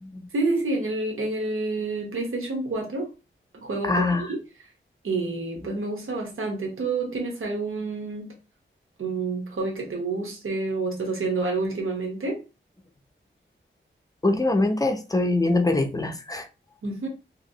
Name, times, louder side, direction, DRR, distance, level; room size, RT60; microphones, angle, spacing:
voice 1, 0.3-3.1 3.5-4.4 5.0-8.3 9.0-12.4 16.8-17.1, right 3 dB, 85° right, 0.9 m, -28 dB
voice 2, 3.8-4.3 14.2-16.5, left 2 dB, 15° left, 0.5 m, -23 dB
3.0 x 2.8 x 2.7 m
wide cardioid pair, 105°, 21 cm